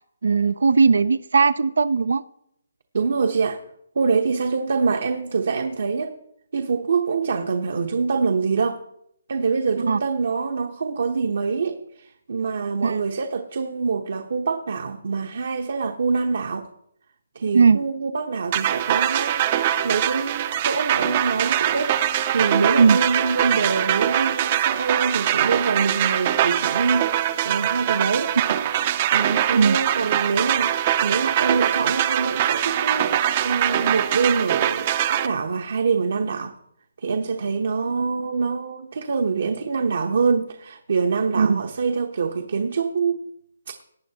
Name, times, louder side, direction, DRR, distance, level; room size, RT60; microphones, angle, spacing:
voice 1, 0.2-2.2 9.8-10.0 12.8-13.0 17.5-17.8 22.8-23.0 29.5-29.8 41.4-41.6, right 5 dB, 75° right, 0.5 m, -18 dB
voice 2, 2.9-3.6 4.0-6.2 6.5-8.8 9.3-16.7 17.3-27.1 27.4-28.3 29.1-36.5 37.0-43.2, right 5 dB, 60° right, 0.9 m, -25 dB
sound 1, 18.5-35.3, right 11 dB, 25° right, 0.6 m, -23 dB
18.5 x 8.5 x 2.9 m
hypercardioid pair, 170°, 0 cm